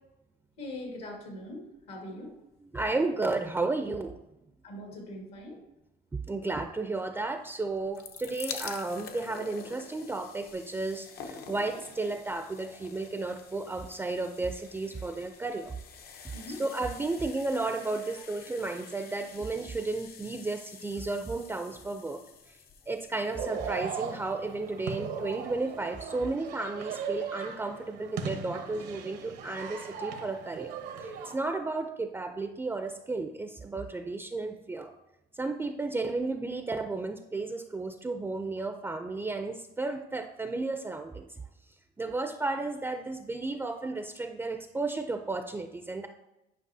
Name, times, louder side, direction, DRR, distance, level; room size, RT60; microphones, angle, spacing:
voice 1, 0.6-2.3 4.6-5.6 16.3-16.6, left 1 dB, 85° left, 0 dB, 2.0 m, -41 dB
voice 2, 2.7-4.2 6.1-15.7 16.1-22.6 22.9-34.9 35.3-41.4 42.0-46.1, right 3 dB, 15° right, 6 dB, 0.4 m, -33 dB
sound 1, 7.7-24.7 25.5-25.6 25.8-25.9, left 6 dB, 65° left, 0.8 m, -47 dB
sound 2, 23.3-31.3, right 6 dB, 80° right, 1.0 m, -38 dB
9.9 x 5.3 x 2.7 m, 0.93 s
cardioid pair, 110°, 17 cm